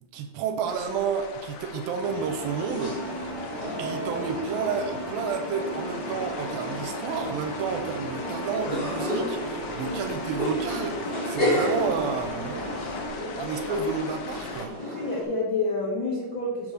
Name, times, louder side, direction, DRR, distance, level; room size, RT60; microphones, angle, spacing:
voice 1, 0.1-3.2 3.8-12.6 13.4-14.8, right 6 dB, 80° right, 6 dB, 2.4 m, -31 dB
sound 1, 0.7-14.7, left 5 dB, 90° left, 1.4 m, -40 dB
sound 2, 2.0-13.1, right 1 dB, 40° right, 3.5 m, -37 dB
sound 3, 2.4-15.2, left 1 dB, 20° left, 1.6 m, -33 dB
voice 2, 14.8-16.7, left 2 dB, 70° left, -4 dB, 1.1 m, -29 dB
5.8 x 5.2 x 6.4 m, 1.0 s
omnidirectional pair, 4.3 m